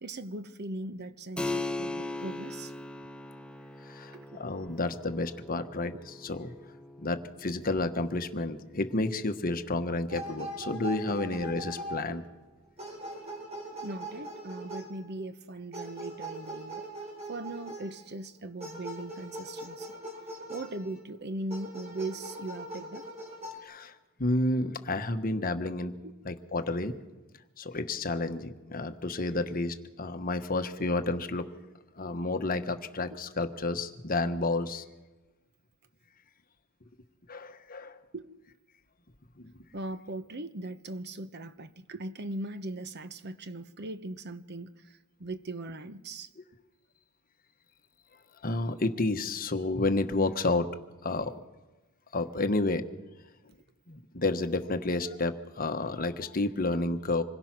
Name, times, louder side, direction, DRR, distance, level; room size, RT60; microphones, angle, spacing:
voice 1, 0.0-2.7 4.1-4.4 5.9-6.0 11.1-11.2 12.1-12.2 13.8-16.8 17.3-19.9 20.5-23.1 26.0-26.1 33.1-33.2 38.1-38.3 39.7-46.3, right 2 dB, 55° right, 1.0 m, -39 dB
Keyboard (musical), 1.4-11.6, left 2 dB, 5° left, 0.6 m, -41 dB
voice 2, 3.8-6.5 7.0-12.2 23.6-25.9 26.2-27.0 27.6-31.5 31.9-34.8 37.3-38.0 39.4-39.5 46.4-46.5 48.4-50.7 51.0-51.4 52.1-52.8 53.9-57.2, left 2 dB, 45° left, 1.2 m, -30 dB
sound 1, 10.1-12.4 12.8-15.1 15.7-18.0 18.6-21.0 21.5-23.6, right 1 dB, 30° right, 5.0 m, -41 dB
26.0 x 21.5 x 6.0 m
head